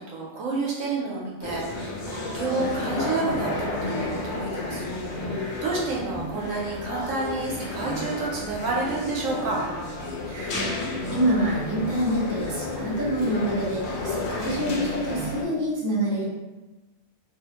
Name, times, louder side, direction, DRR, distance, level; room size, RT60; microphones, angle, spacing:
voice 1, 0.0-9.6, right 3 dB, 70° right, -4 dB, 0.9 m, -30 dB
sound 1, 1.4-15.4, left 2 dB, 65° left, 0.7 m, -32 dB
voice 2, 10.3-10.7 11.1-16.2, right 1 dB, 25° right, -6 dB, 0.4 m, -26 dB
2.4 x 2.3 x 2.8 m, 1.1 s
omnidirectional pair, 1.6 m